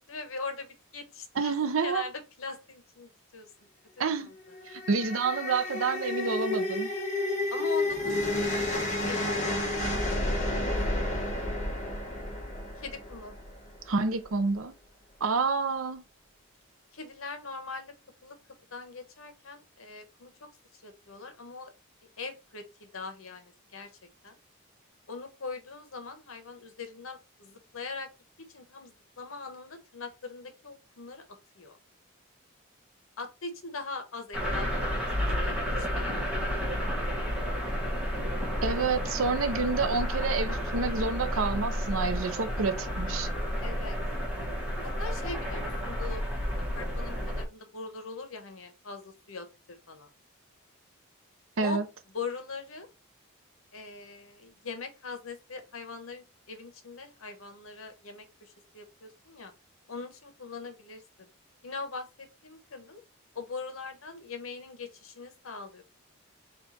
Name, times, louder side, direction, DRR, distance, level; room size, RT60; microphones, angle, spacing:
voice 1, 0.0-1.5 1.8-3.5 4.0-4.3 7.5-11.1 12.8-13.3 16.9-17.9 18.2-18.4 18.7-20.3 20.8-21.7 22.2-23.9 24.2-24.4 25.1-28.1 28.5-31.2 31.6-31.8 33.2-34.7 35.4-36.2 36.5-36.7 43.6-44.0 44.8-46.2 46.7-50.1 51.6-51.8 52.1-52.9 53.7-59.5 59.9-61.3 61.6-63.0 63.3-65.8, left 4 dB, 70° left, 1.0 m, -41 dB
voice 2, 1.4-2.1 4.0-4.3 4.7-6.9 13.9-14.7 15.2-16.0 38.6-43.3 51.6-51.8, right 4 dB, 70° right, 0.6 m, -28 dB
sound 1, 4.5-13.8, left 1 dB, 35° left, 1.2 m, -31 dB
sound 2, 34.3-47.5, equal, 5° right, 1.1 m, -31 dB
4.4 x 2.4 x 4.1 m
head